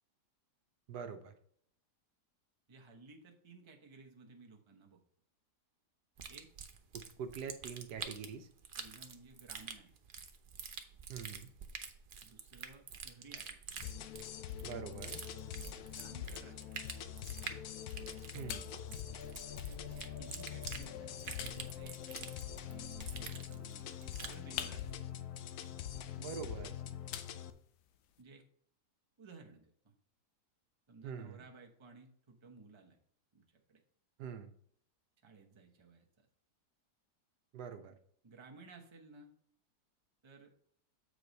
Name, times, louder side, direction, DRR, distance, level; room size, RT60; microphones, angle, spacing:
voice 1, 0.9-1.3 6.9-8.5 11.1-11.5 14.6-15.2 18.3-18.7 26.2-26.7 31.0-31.4 34.2-34.5 37.5-37.9, right 7 dB, 80° right, 8 dB, 1.3 m, -44 dB
voice 2, 2.7-5.0 6.3-6.5 8.8-9.9 12.2-13.6 15.5-17.2 19.9-22.0 22.7-24.9 28.2-28.4 29.2-29.9 30.9-33.0 33.3-33.4 33.7-33.8 35.2-36.3 38.2-39.3 40.2-40.5, right 4 dB, 20° right, 1 dB, 0.8 m, -57 dB
sound 1, 6.2-24.4, right 6 dB, 50° right, 0.6 m, -48 dB
sound 2, 13.8-27.5, left 9 dB, 70° left, 1.1 m, -44 dB
sound 3, 16.2-28.2, left 10 dB, 90° left, 1.2 m, -52 dB
7.7 x 4.9 x 4.0 m, 0.63 s
omnidirectional pair, 1.8 m